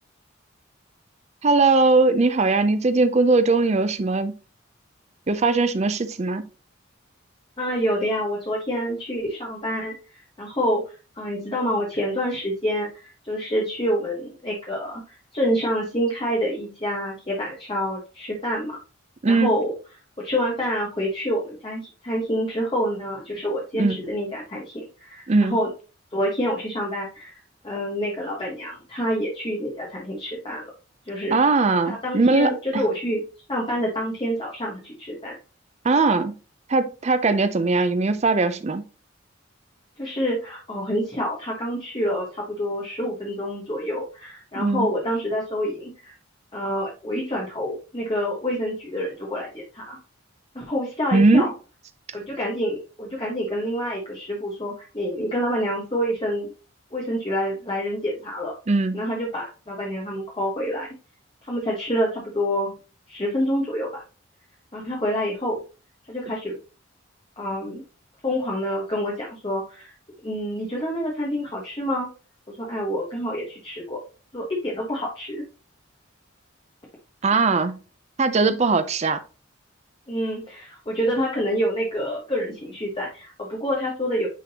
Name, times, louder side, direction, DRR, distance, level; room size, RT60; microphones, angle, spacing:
voice 1, 1.4-4.3 5.3-6.4 19.2-19.5 23.8-24.0 25.3-25.6 31.3-32.8 35.8-36.3 36.7-38.8 44.6-44.9 51.1-51.5 58.7-59.0 77.2-77.8 78.2-79.2, right 3 dB, 35° right, 0.5 m, -20 dB
voice 2, 7.6-10.8 11.2-18.8 19.3-19.7 20.2-25.7 26.1-27.4 27.6-30.7 31.1-31.4 31.9-33.2 33.5-35.3 40.0-46.1 46.5-50.0 50.5-51.5 52.1-56.5 56.9-58.5 58.9-60.9 61.4-62.7 63.1-64.0 64.7-65.6 66.1-66.6 67.4-67.8 68.2-69.9 70.2-72.1 72.5-74.0 74.3-75.4 80.1-84.3, equal, 25° left, 1.3 m, -27 dB
9.1 x 3.8 x 2.9 m
head